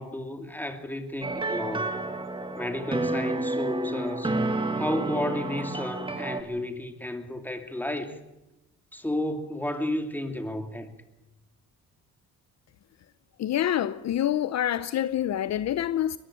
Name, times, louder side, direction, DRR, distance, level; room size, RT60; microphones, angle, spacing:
voice 1, 0.0-1.9 2.6-4.3 4.8-8.2 8.9-10.9, left 1 dB, 5° left, 2.8 m, -32 dB
sound 1, 1.2-6.4, right 2 dB, 15° right, 2.2 m, -30 dB
voice 2, 13.4-16.2, left 11 dB, 60° left, 0.7 m, -26 dB
21.0 x 15.0 x 9.0 m
cardioid pair, 90°, 30 cm